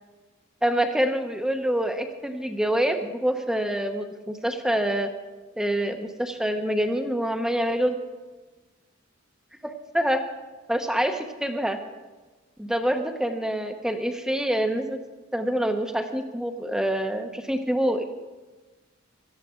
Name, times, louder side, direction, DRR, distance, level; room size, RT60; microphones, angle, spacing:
voice 1, 0.6-5.1 5.6-7.9 9.6-10.2 10.7-11.8 12.6-15.0 15.3-18.0, right 1 dB, 5° right, 6 dB, 0.9 m, -26 dB
18.0 x 13.5 x 3.8 m, 1.2 s
head